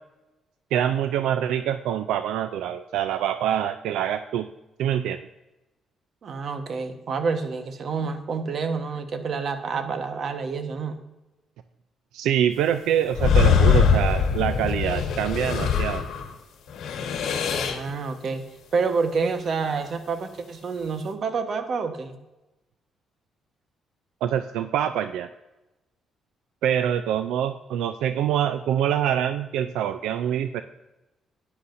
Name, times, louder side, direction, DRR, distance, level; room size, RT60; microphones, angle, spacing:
voice 1, 0.7-4.5 4.8-5.3 12.1-16.0 24.2-25.3 26.6-30.6, right 10 dB, 90° right, 11 dB, 0.4 m, -25 dB
voice 2, 6.2-11.0 17.5-18.4 18.7-22.2, right 5 dB, 55° right, 8 dB, 1.2 m, -28 dB
sound 1, 13.1-16.3 16.7-17.9, left 6 dB, 75° left, 1.4 m, -22 dB
13.0 x 9.7 x 2.6 m, 1.0 s
cardioid pair, 90°, 0 cm